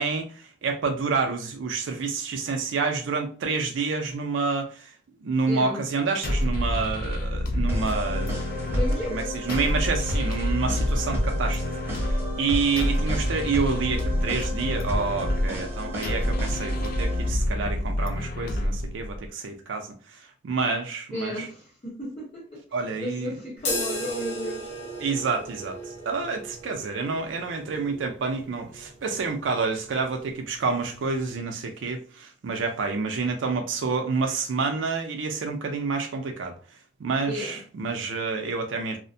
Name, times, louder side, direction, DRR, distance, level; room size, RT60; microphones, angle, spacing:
voice 1, 0.0-4.9 5.2-8.3 9.1-11.6 11.9-21.5 22.7-23.3 25.0-36.6 37.0-39.0, right 4 dB, 80° right, 0.4 m, -28 dB
voice 2, 5.5-5.9 8.7-9.4 21.1-22.6 23.0-24.7 37.3-37.6, left 1 dB, 30° left, 1.2 m, -33 dB
sound 1, 6.2-19.3, left 1 dB, 50° left, 0.4 m, -28 dB
sound 2, 7.7-17.3, left 1 dB, 15° right, 0.8 m, -33 dB
sound 3, 23.6-31.4, equal, 65° left, 0.8 m, -37 dB
2.4 x 2.1 x 2.6 m
head